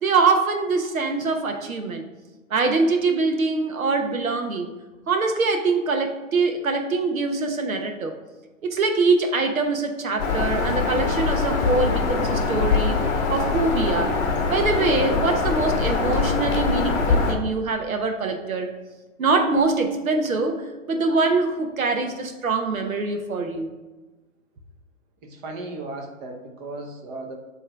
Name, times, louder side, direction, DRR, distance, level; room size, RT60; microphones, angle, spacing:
voice 1, 0.0-2.0 2.5-4.7 5.1-8.1 8.6-13.0 13.3-14.1 14.5-18.7 19.2-23.7, right 3 dB, 90° right, 5 dB, 1.1 m, -23 dB
Bird vocalization bird call bird song, 10.2-17.3, left 4 dB, 30° left, 1.0 m, -23 dB
voice 2, 25.2-27.4, right 2 dB, 30° right, 3 dB, 0.9 m, -36 dB
7.2 x 3.2 x 4.6 m, 1.2 s
hypercardioid pair, 140°, 40 cm